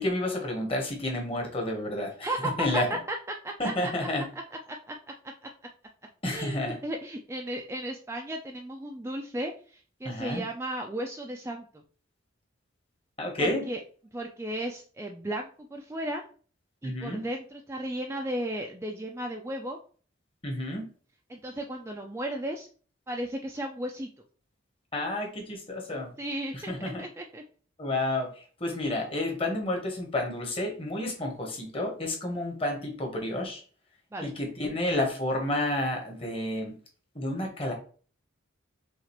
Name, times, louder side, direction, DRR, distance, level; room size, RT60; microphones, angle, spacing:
voice 1, 0.0-2.3 2.6-2.9 3.6-4.2 6.2-6.8 10.0-10.4 13.2-13.6 16.8-17.2 20.4-20.8 24.9-26.1 26.5-27.0 27.8-33.6 34.2-36.7 37.1-37.7, left 1 dB, 30° left, 1 dB, 1.1 m, -30 dB
voice 2, 2.2-2.8 3.1-3.2 3.4-3.9 4.7-5.0 6.3-11.8 13.4-13.8 14.1-16.2 16.8-19.8 21.3-22.7 23.1-24.1 26.2-27.4 34.1-34.3, right 1 dB, 15° right, 2 dB, 0.3 m, -35 dB
5.9 x 2.4 x 3.0 m, 0.41 s
head